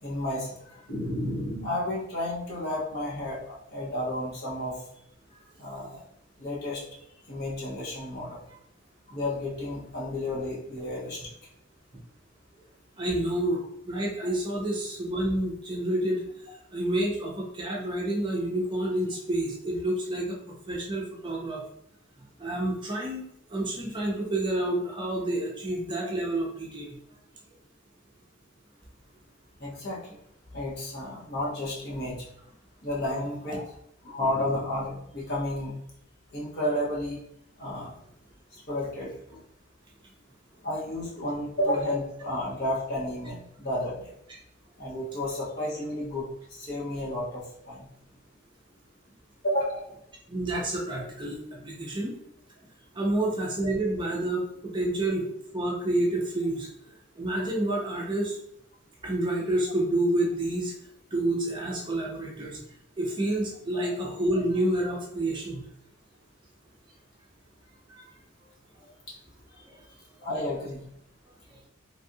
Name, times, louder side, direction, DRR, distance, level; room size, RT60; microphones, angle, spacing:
voice 1, 0.0-4.8 5.6-6.0 6.4-6.8 7.3-8.4 9.1-11.3 29.6-30.2 30.5-32.3 32.8-33.6 34.0-35.7 36.3-37.2 37.6-37.9 38.5-39.4 40.6-44.1 44.8-47.9 49.4-49.9 63.7-63.9 69.1-69.2 69.5-69.9 70.2-70.9, left 1 dB, 50° left, -5 dB, 0.9 m, -32 dB
voice 2, 13.0-13.6 13.8-16.2 16.7-21.6 22.2-23.2 23.5-27.0 50.3-52.2 52.9-55.3 55.5-58.4 59.0-60.7 61.1-62.6 63.0-65.7 67.9-68.1 68.8-68.9 69.7-69.8 71.5-71.6, right 1 dB, 25° right, -3 dB, 0.6 m, -29 dB
3.2 x 2.4 x 2.7 m, 0.73 s
head